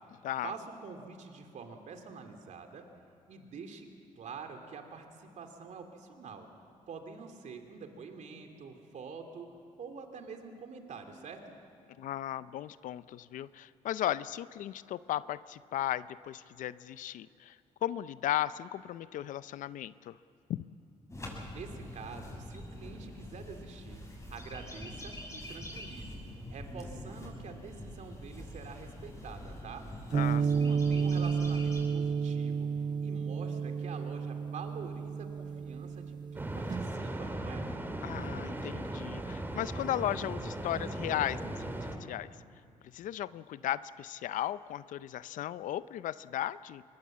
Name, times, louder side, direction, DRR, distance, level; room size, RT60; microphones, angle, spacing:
voice 1, 0.4-2.8 3.3-3.9 4.2-6.5 6.9-9.5 9.8-11.4 21.5-24.0 24.3-26.2 26.5-29.8 30.4-32.7 33.0-37.7, right 5 dB, 65° right, 5 dB, 2.7 m, -46 dB
voice 2, 12.0-17.6 17.8-20.2 20.5-20.6 30.1-30.5 38.0-42.3 42.9-46.8, left 12 dB, 75° left, 16 dB, 0.6 m, -36 dB
sound 1, 21.1-31.8, left 1 dB, 20° left, 7.7 m, -45 dB
sound 2, 30.1-36.9, right 6 dB, 35° right, 0.5 m, -31 dB
sound 3, 36.3-42.0, right 1 dB, 15° right, 2.7 m, -38 dB
24.0 x 21.0 x 7.4 m, 2.6 s
cardioid pair, 75°, 14 cm